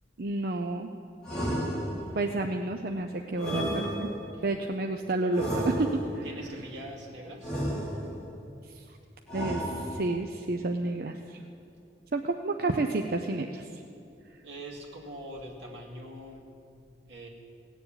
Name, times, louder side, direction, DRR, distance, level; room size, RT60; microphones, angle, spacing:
voice 1, 0.2-0.9 2.1-4.1 4.4-6.2 8.7-8.8 9.3-11.4 12.1-13.7, right 2 dB, 55° right, 4 dB, 0.6 m, -30 dB
sound 1, 1.2-2.3 3.4-4.4 5.3-6.3 7.4-8.3 9.3-10.2, equal, 5° left, 3.3 m, -32 dB
voice 2, 6.2-7.6 14.4-16.5 17.1-17.3, right 1 dB, 85° right, 0 dB, 2.4 m, -43 dB
18.0 x 7.2 x 8.8 m, 2.5 s
head